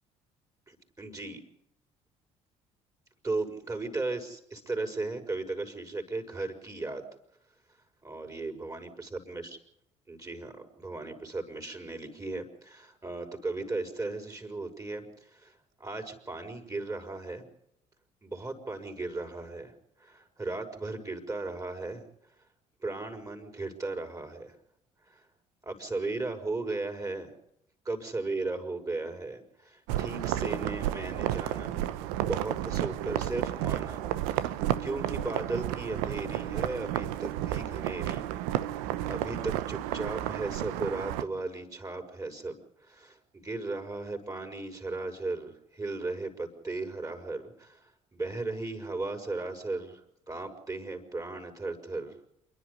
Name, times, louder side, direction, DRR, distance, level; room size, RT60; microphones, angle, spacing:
voice 1, 0.7-1.4 3.2-7.0 8.0-9.6 10.1-17.4 18.2-19.7 20.0-22.1 22.8-24.6 25.1-25.2 25.6-27.3 27.8-31.8 32.2-38.3 39.1-52.3, right 3 dB, 20° right, 4 dB, 5.5 m, -36 dB
sound 1, 29.9-41.2, right 13 dB, 75° right, 0.9 m, -32 dB
28.0 x 11.5 x 8.4 m, 0.74 s
hypercardioid pair, 55°, 17 cm